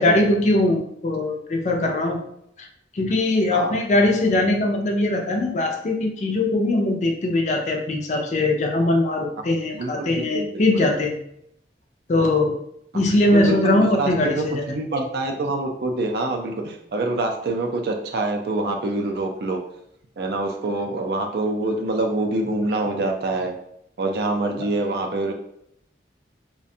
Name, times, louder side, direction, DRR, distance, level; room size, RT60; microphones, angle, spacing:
voice 1, 0.0-2.2 2.6-2.7 2.9-11.2 12.1-12.6 12.9-14.6, left 2 dB, 40° left, 2 dB, 0.4 m, -21 dB
voice 2, 9.7-10.9 13.3-19.6 20.2-23.5 24.0-25.3, right 2 dB, 60° right, 3 dB, 0.4 m, -25 dB
2.4 x 2.1 x 2.6 m, 0.74 s
head